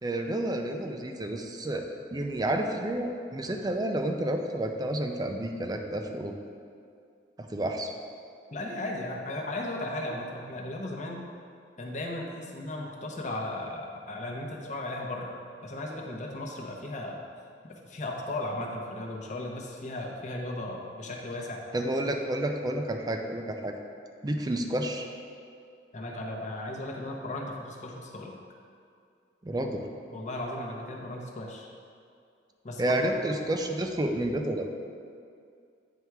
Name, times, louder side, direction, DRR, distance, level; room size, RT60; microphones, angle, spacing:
voice 1, 0.0-6.3 7.4-7.9 21.7-23.7 24.2-25.1 29.4-29.8 32.8-34.7, right 1 dB, 20° right, 4 dB, 0.4 m, -30 dB
voice 2, 8.5-11.2 11.8-15.3 15.6-17.2 17.7-21.7 25.9-28.3 30.1-31.7 32.6-33.0, left 1 dB, 40° left, 0 dB, 0.8 m, -36 dB
9.1 x 3.4 x 4.6 m, 2.3 s
head